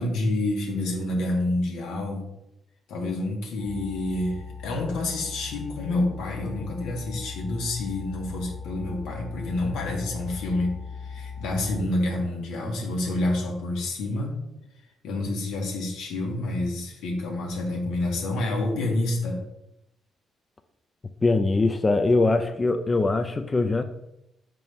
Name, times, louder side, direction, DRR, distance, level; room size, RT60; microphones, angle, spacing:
voice 1, 0.0-2.3 2.9-14.4 15.0-19.4, left 2 dB, 90° left, 0 dB, 1.6 m, -28 dB
sound 1, 3.6-11.8, left 6 dB, 60° left, 1.1 m, -39 dB
voice 2, 21.2-23.8, left 3 dB, 25° left, 7 dB, 0.4 m, -22 dB
6.1 x 4.5 x 3.5 m, 0.84 s
cardioid pair, 90°, 0 cm